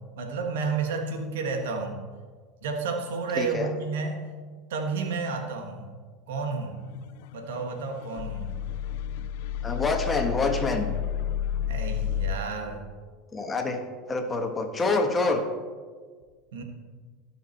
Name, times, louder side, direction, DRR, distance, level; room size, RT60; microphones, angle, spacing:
voice 1, 0.1-2.0 2.6-4.2 4.7-5.9 6.3-6.8 7.3-8.6 11.7-12.8 16.5-16.6, right 4 dB, 85° right, 4 dB, 1.6 m, -31 dB
voice 2, 3.3-3.7 9.6-11.0 13.3-13.8 14.1-15.4, left 3 dB, 25° left, 4 dB, 1.5 m, -26 dB
sound 1, 7.1-12.4, left 10 dB, 75° left, 0.4 m, -31 dB
16.5 x 6.0 x 4.6 m, 1.5 s
supercardioid pair, 105°, 0 cm